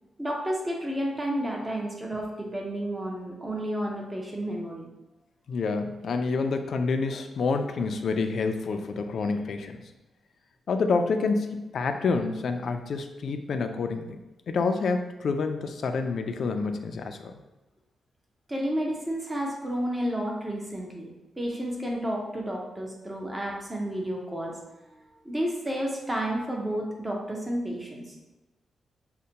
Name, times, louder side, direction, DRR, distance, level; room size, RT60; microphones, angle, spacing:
voice 1, 0.2-4.9 18.5-21.1 21.4-24.6 25.2-28.1, equal, 15° right, -1 dB, 0.6 m, -31 dB
voice 2, 5.5-9.8 10.7-14.2 14.5-17.4, left 4 dB, 60° left, 6 dB, 0.4 m, -28 dB
6.4 x 2.2 x 2.8 m, 1.1 s
cardioid pair, 120°, 0 cm